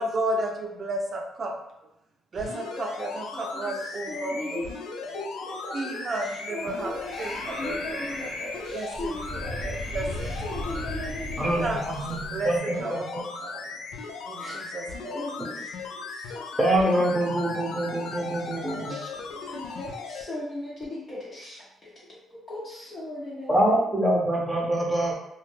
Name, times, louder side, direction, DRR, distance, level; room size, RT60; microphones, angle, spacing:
voice 1, 0.0-1.5 2.3-4.6 5.7-6.9 7.2-8.1 8.7-9.1 9.6-10.8 11.6-11.8 12.3-13.6 14.3-15.2, right 2 dB, 45° right, 2 dB, 0.5 m, -32 dB
sound 1, 2.4-20.2 20.8-20.9, left 4 dB, 90° left, 0.3 m, -38 dB
voice 2, 3.1-4.6 5.1-9.7 10.2-11.7 12.0-12.1 14.4-14.7 15.1-16.4 16.8-16.9 18.9-23.9, left 2 dB, 45° left, -7 dB, 0.8 m, -38 dB
Breathing, 6.6-12.6, left 1 dB, 60° left, 1.1 m, -37 dB
voice 3, 11.4-13.0 16.6-19.0 23.5-25.1, right 1 dB, 5° right, -3 dB, 0.8 m, -25 dB
2.2 x 2.0 x 3.1 m, 0.84 s
cardioid pair, 90°, 0 cm